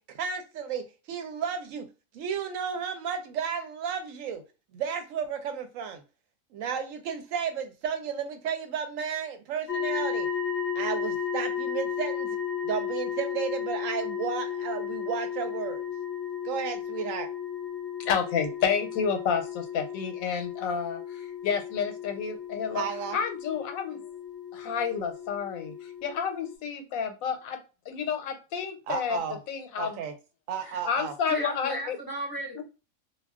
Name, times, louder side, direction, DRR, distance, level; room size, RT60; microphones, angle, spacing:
voice 1, 0.1-1.8 2.1-4.4 4.7-6.0 6.5-10.3 10.8-12.4 12.6-15.8 16.4-17.3 22.7-23.2 28.9-29.4 29.8-30.1 30.5-31.1, right 7 dB, 75° right, 0.9 m, -33 dB
sound 1, 9.7-26.6, left 7 dB, 20° left, 0.7 m, -34 dB
voice 2, 18.0-22.8 23.1-24.0 24.5-27.6 27.9-29.2 29.5-30.0 30.9-32.0 32.6-32.7, left 7 dB, 80° left, 1.1 m, -30 dB
voice 3, 31.3-32.6, right 1 dB, 25° right, 0.5 m, -35 dB
2.3 x 2.2 x 3.4 m
omnidirectional pair, 1.4 m